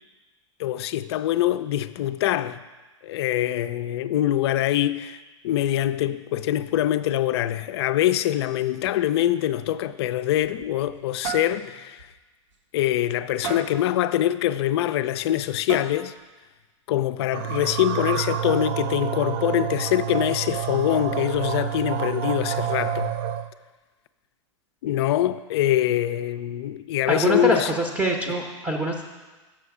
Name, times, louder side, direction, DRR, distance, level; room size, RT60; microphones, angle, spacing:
voice 1, 0.6-2.6 3.0-12.1 12.7-16.1 16.9-23.1 24.8-27.7, left 12 dB, 55° left, 0.4 m, -24 dB
sound 1, 10.2-11.0 11.2-11.6 12.0-12.1 12.5-12.6 13.4-13.8 15.0-15.1 15.7-16.2, right 7 dB, 75° right, 1.1 m, -33 dB
sound 2, 17.3-23.5, right 10 dB, 45° right, 0.4 m, -28 dB
voice 2, 27.1-29.0, right 1 dB, 10° right, 0.7 m, -24 dB
7.0 x 6.1 x 4.8 m
hypercardioid pair, 100°, 16 cm